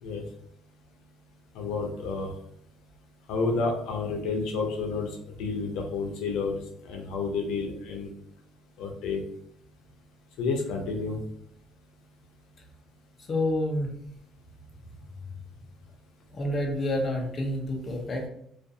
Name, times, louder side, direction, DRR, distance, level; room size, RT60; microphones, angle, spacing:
voice 1, 1.5-2.3 3.3-5.1 5.4-6.6 6.8-8.1 8.8-9.2 10.4-11.2, left 4 dB, 75° left, 1 dB, 0.5 m, -30 dB
voice 2, 13.3-13.9 16.3-18.3, left 1 dB, 25° left, 1 dB, 0.5 m, -28 dB
2.5 x 2.3 x 2.6 m, 0.71 s
cardioid pair, 160°, 0 cm